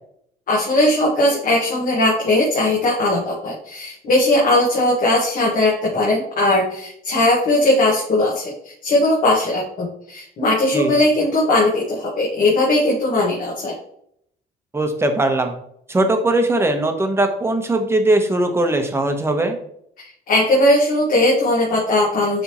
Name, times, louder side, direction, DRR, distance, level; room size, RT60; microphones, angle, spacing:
voice 1, 0.5-13.7 20.0-22.4, left 1 dB, 55° left, -3 dB, 1.7 m, -18 dB
voice 2, 14.7-15.5 15.9-19.6, right 1 dB, 15° right, 5 dB, 1.0 m, -19 dB
9.4 x 3.5 x 3.0 m, 0.71 s
cardioid pair, 110°, 17 cm